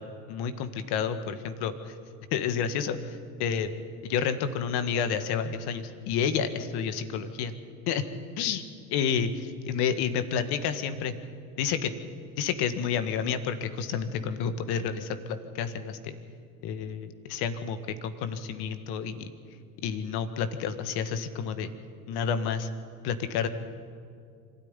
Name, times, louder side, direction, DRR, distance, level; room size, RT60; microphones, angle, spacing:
voice 1, 0.3-1.9 2.3-3.1 3.4-3.7 4.0-7.5 7.9-8.0 8.4-8.6 8.9-11.1 11.6-11.9 12.4-16.1 16.6-17.8 18.2-19.3 19.8-21.7 22.1-22.7 23.0-23.5, left 7 dB, 65° left, 10 dB, 1.9 m, -30 dB
25.5 x 13.0 x 9.9 m, 2.3 s
hypercardioid pair, 70°, 43 cm